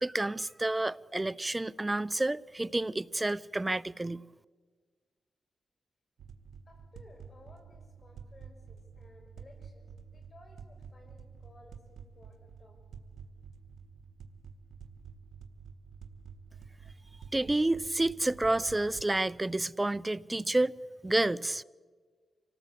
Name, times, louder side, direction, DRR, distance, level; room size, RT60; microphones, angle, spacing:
voice 1, 0.0-4.2 17.3-20.7 21.0-21.6, right 2 dB, 20° right, 0.6 m, -29 dB
sound 1, 6.2-19.2, right 6 dB, 85° right, 1.4 m, -50 dB
voice 2, 6.7-12.8, left 2 dB, 45° left, 6.4 m, -58 dB
25.5 x 18.0 x 8.0 m
cardioid pair, 65°, 0 cm